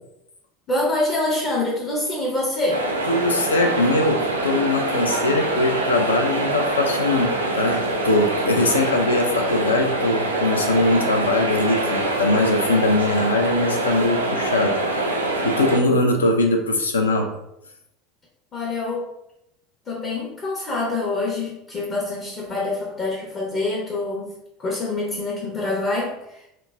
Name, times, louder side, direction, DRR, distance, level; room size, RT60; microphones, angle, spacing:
voice 1, 0.7-2.9 18.5-19.1 19.9-24.3 24.6-26.5, left 2 dB, 35° left, -4 dB, 0.6 m, -26 dB
sound 1, 2.7-15.8, right 2 dB, 85° right, 0.3 m, -24 dB
voice 2, 3.1-17.3, left 2 dB, 80° left, 3 dB, 0.4 m, -21 dB
2.9 x 2.0 x 2.2 m, 0.83 s
figure-of-eight pair, 70°, 0 cm